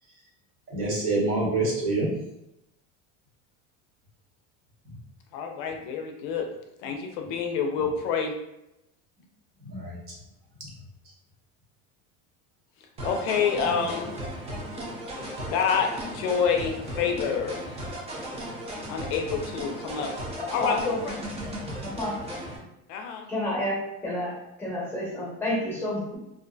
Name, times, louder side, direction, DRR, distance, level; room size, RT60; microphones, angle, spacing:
voice 1, 0.7-2.1 9.6-10.2 10.6-10.7, right 2 dB, 45° right, -4 dB, 0.9 m, -27 dB
voice 2, 5.3-6.5 6.8-8.4 13.0-14.1 15.5-17.7 18.9-20.1 20.5-21.1 22.9-23.3, left 6 dB, 80° left, 3 dB, 0.5 m, -27 dB
sound 1, 13.0-22.6, equal, 20° right, 0.5 m, -36 dB
voice 3, 20.4-21.0 21.8-22.1 23.3-23.8 24.0-26.2, left 1 dB, 5° left, -5 dB, 0.9 m, -30 dB
2.5 x 2.4 x 2.2 m, 0.87 s
cardioid pair, 150°, 31 cm